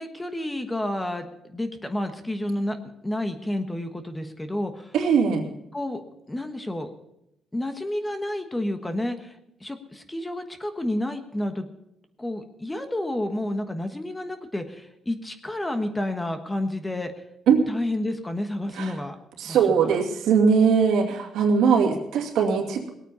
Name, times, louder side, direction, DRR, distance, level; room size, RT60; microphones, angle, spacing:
voice 1, 0.0-2.8 3.0-4.9 5.7-6.0 6.3-6.9 7.5-9.3 9.6-11.7 12.2-17.1 17.7-19.2 19.4-19.9, left 1 dB, 10° left, 7 dB, 1.3 m, -30 dB
voice 2, 4.9-5.5 17.5-17.6 18.7-19.0 19.4-22.9, right 6 dB, 85° right, 1 dB, 2.5 m, -20 dB
19.5 x 9.0 x 5.5 m, 0.82 s
cardioid pair, 120°, 0 cm